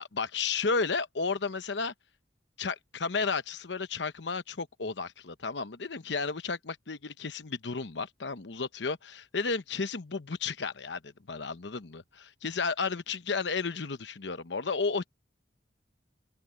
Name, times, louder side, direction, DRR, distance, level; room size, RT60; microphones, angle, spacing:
voice 1, 0.0-1.9 2.6-15.1, left 4 dB, 70° left, 0.9 m, -33 dB
open air
head